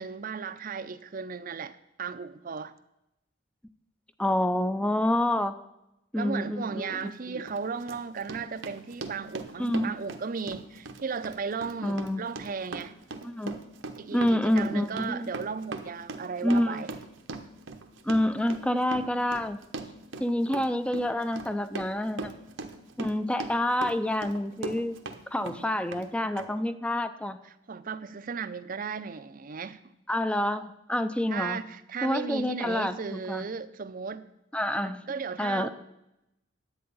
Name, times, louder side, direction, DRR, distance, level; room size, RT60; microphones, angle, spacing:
voice 1, 0.0-2.7 6.1-12.9 14.0-16.9 27.4-29.8 31.3-34.3 35.1-35.7, right 5 dB, 45° right, 0.6 m, -35 dB
voice 2, 4.2-5.5 6.1-7.4 9.6-10.0 11.8-12.3 13.2-13.5 14.1-15.3 16.4-16.9 18.0-19.6 20.2-22.3 23.0-25.0 25.3-27.4 30.1-31.6 32.0-33.5 34.5-35.1 35.4-35.7, left 1 dB, 5° left, 0.5 m, -28 dB
Run, 6.9-7.0 7.5-25.2 25.5-26.1 26.4-26.5, right 3 dB, 85° right, 1.0 m, -40 dB
10.5 x 8.3 x 5.4 m
head